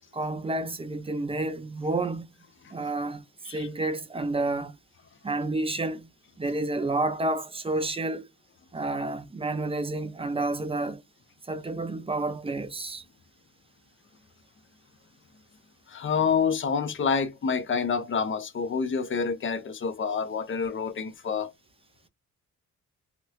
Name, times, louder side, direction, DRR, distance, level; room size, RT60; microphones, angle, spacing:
voice 1, 0.1-2.3 2.7-4.8 5.2-6.1 6.4-8.3 8.7-11.0 11.5-13.0, right 2 dB, 20° right, 0.5 m, -30 dB
voice 2, 15.9-21.5, left 6 dB, 40° left, 0.6 m, -28 dB
2.9 x 2.4 x 3.2 m
cardioid pair, 110°, 31 cm